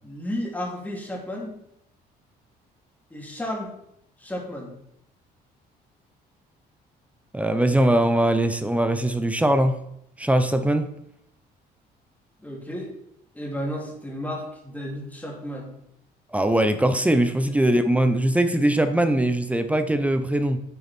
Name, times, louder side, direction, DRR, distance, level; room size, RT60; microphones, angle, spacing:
voice 1, 0.0-1.6 3.1-3.7 4.2-4.7 12.4-12.9 13.3-15.7 17.4-17.5, left 1 dB, 10° left, -1 dB, 2.8 m, -33 dB
voice 2, 7.3-9.8 10.2-10.9 16.3-20.6, right 1 dB, 10° right, 9 dB, 0.8 m, -21 dB
9.2 x 7.7 x 4.5 m, 0.74 s
cardioid pair, 110°, 17 cm